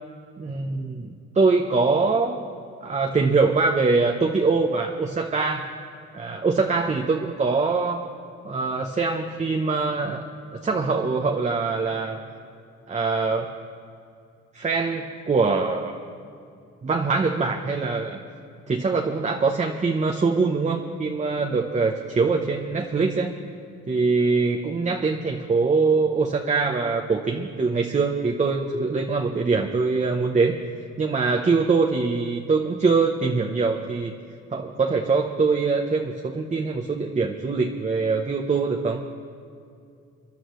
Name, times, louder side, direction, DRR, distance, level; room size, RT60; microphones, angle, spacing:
voice 1, 0.4-2.4 2.8-5.7 6.1-8.0 8.4-10.3 10.6-12.2 12.9-13.5 14.5-16.0 16.8-18.2 18.7-23.3 23.9-30.6 31.0-34.1 34.5-39.0, right 4 dB, 25° right, 2 dB, 0.8 m, -23 dB
27.5 x 11.0 x 3.1 m, 2.4 s
cardioid pair, 90°, 30 cm